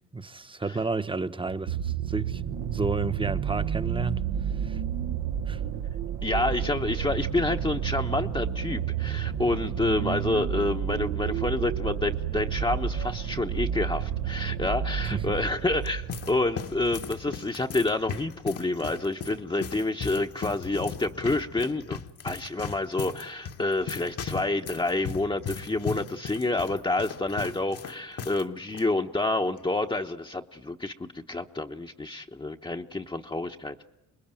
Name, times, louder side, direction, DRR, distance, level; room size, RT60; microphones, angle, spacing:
voice 1, 0.0-4.8 5.5-5.6 15.1-15.2, right 3 dB, 15° right, 1.0 m, -32 dB
sound 1, 1.5-17.0 17.9-18.0, right 9 dB, 80° right, 1.1 m, -31 dB
voice 2, 6.2-33.8, left 2 dB, 15° left, 1.0 m, -28 dB
sound 2, 15.5-28.4 28.7-28.9 29.6-29.9, left 6 dB, 50° left, 1.4 m, -38 dB
26.0 x 21.0 x 9.0 m
cardioid pair, 90°, 30 cm